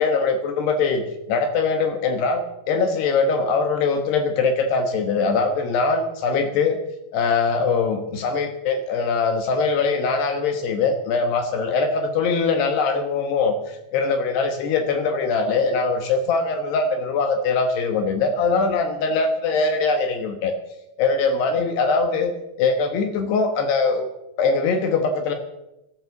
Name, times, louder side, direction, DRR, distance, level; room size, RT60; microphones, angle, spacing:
voice 1, 0.0-6.8 7.1-20.5 21.0-22.3 22.6-24.1 24.4-25.3, left 4 dB, 70° left, 6 dB, 3.0 m, -22 dB
13.5 x 13.0 x 7.0 m, 0.90 s
omnidirectional pair, 5.6 m